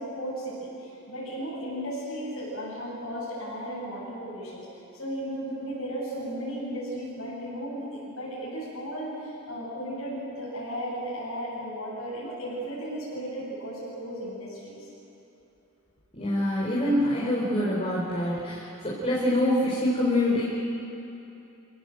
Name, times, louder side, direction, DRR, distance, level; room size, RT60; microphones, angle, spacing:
voice 1, 0.0-4.6 4.9-14.9, equal, 75° left, -8 dB, 7.5 m, -35 dB
voice 2, 16.1-20.4, left 1 dB, 30° left, -6 dB, 4.3 m, -25 dB
29.5 x 17.0 x 7.9 m, 2.9 s
head